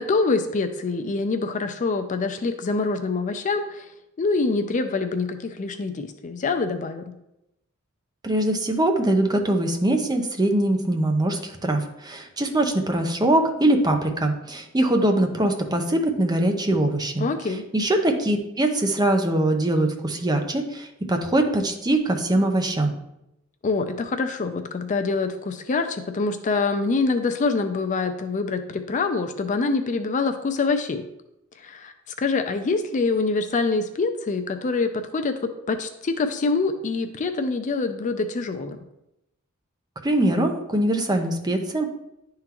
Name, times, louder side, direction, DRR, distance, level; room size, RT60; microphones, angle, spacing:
voice 1, 0.0-3.9 4.2-7.1 17.2-17.6 23.6-31.0 31.6-31.9 32.2-38.8, left 3 dB, 35° left, 7 dB, 0.4 m, -25 dB
voice 2, 8.2-17.2 17.7-22.9 40.0-41.9, right 1 dB, 20° right, 4 dB, 0.6 m, -22 dB
10.5 x 3.8 x 2.9 m, 0.86 s
head